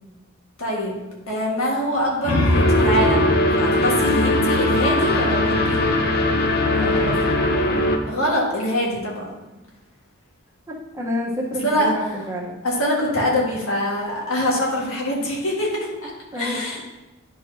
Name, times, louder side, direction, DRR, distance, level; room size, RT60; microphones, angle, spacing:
voice 1, 0.6-1.0 1.3-5.8 8.1-9.3 11.6-12.2 12.6-16.8, equal, 70° left, -3 dB, 1.7 m, -24 dB
sound 1, 2.0-5.4, left 1 dB, 90° left, 1.1 m, -25 dB
sound 2, 2.5-8.0, left 1 dB, 50° left, 0.7 m, -20 dB
voice 2, 6.7-7.2 10.9-12.5 16.3-16.6, left 1 dB, 15° right, -3 dB, 1.2 m, -28 dB
10.5 x 4.7 x 2.8 m, 1.1 s
head